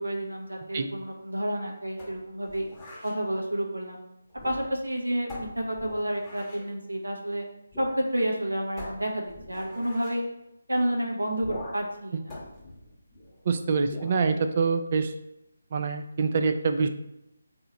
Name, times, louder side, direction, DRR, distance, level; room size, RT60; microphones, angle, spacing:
voice 1, 0.0-2.6 3.0-4.0 4.4-7.4 7.8-10.2 10.7-12.3, right 1 dB, 90° right, -1 dB, 0.8 m, -30 dB
sound 1, 2.0-3.2 4.3-4.9 5.3-6.7 7.7-8.0 8.3-8.4 8.8-10.2 11.4-11.9 12.3-13.4 13.9-14.2, left 1 dB, 15° left, 0.9 m, -42 dB
voice 2, 13.5-15.1 15.7-16.9, right 4 dB, 40° right, 7 dB, 0.4 m, -25 dB
3.8 x 2.7 x 4.1 m, 0.84 s
figure-of-eight pair, 155°, 0 cm